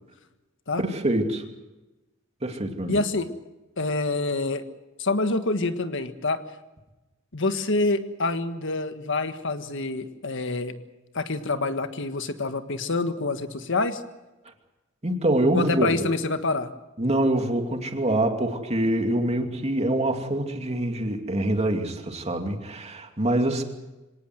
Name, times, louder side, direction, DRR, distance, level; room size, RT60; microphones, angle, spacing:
voice 1, 0.8-1.4 2.4-3.1 15.0-16.0 17.0-23.6, right 1 dB, 30° right, 4 dB, 2.6 m, -25 dB
voice 2, 2.9-3.3 3.8-4.6 5.0-6.4 7.3-10.7 11.1-14.0 15.5-16.7, left 3 dB, 60° left, 9 dB, 1.6 m, -26 dB
25.5 x 18.0 x 7.9 m, 1.1 s
head